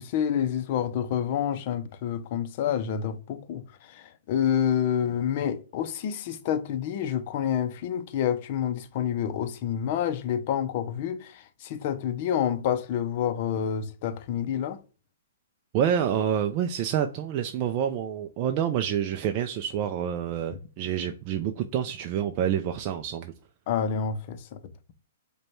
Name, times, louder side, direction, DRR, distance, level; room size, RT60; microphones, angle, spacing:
voice 1, 0.0-14.8 23.7-24.6, left 9 dB, 45° left, 0.5 m, -28 dB
voice 2, 15.7-23.3, right 9 dB, 35° right, 0.3 m, -27 dB
5.0 x 2.2 x 3.0 m
hypercardioid pair, 150°, 0 cm